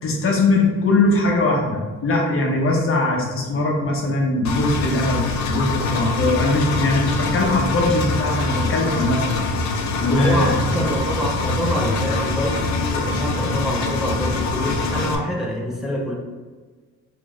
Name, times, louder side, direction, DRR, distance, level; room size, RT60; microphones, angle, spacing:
voice 1, 0.0-9.3 10.0-10.5, left 2 dB, 45° left, 0 dB, 0.9 m, -20 dB
Engine, 4.4-15.2, left 3 dB, 65° left, 0.5 m, -24 dB
voice 2, 10.1-16.1, equal, ahead, -4 dB, 0.8 m, -26 dB
4.4 x 2.8 x 2.4 m, 1.4 s
cardioid pair, 90°, 30 cm